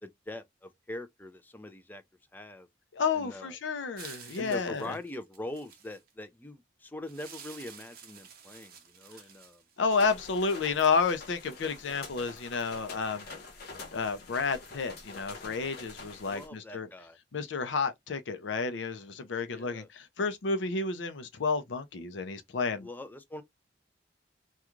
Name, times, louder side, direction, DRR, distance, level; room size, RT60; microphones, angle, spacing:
voice 1, 0.0-2.0 2.3-2.7 3.1-3.6 4.4-9.6 16.3-17.2 19.5-19.9 22.8-23.4, left 1 dB, 10° left, 0.3 m, -42 dB
voice 2, 2.9-5.0 9.8-13.3 13.9-16.9 17.3-22.9, left 4 dB, 80° left, 0.5 m, -31 dB
sound 1, 4.0-6.1 7.1-10.0, right 7 dB, 50° right, 0.6 m, -50 dB
sound 2, 9.9-16.5, left 3 dB, 55° left, 0.8 m, -46 dB
2.4 x 2.3 x 2.9 m
head